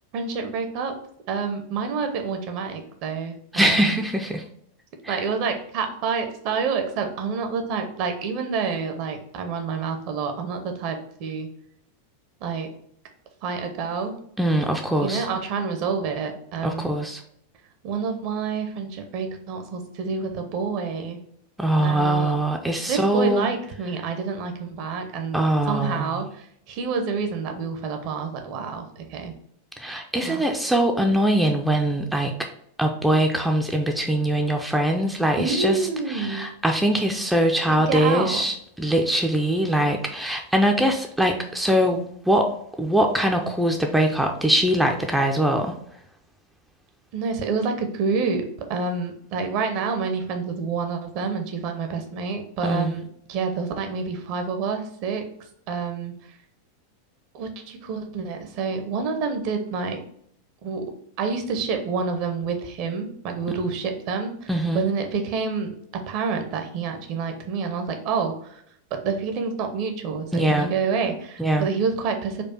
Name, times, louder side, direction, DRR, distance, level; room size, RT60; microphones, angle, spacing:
voice 1, 0.1-0.9 1.3-4.0 5.1-11.5 12.4-12.7 13.4-14.2 15.0-16.9 17.8-21.2 21.8-22.3 22.9-29.3 30.2-30.4 35.4-36.5 37.7-38.4 47.1-53.0 53.3-55.2 55.7-56.1 57.3-60.0 60.6-60.8 61.2-68.6 69.0-72.4, right 5 dB, 45° right, 5 dB, 0.7 m, -28 dB
voice 2, 3.5-4.4 5.0-5.2 14.4-15.3 16.6-17.2 21.6-23.5 25.3-26.1 29.8-32.3 32.8-42.5 42.8-45.7 52.6-53.0 64.5-64.9 70.3-70.7 71.4-71.7, right 1 dB, 5° right, 2 dB, 0.4 m, -22 dB
4.4 x 2.3 x 4.4 m, 0.69 s
figure-of-eight pair, 90°, 0 cm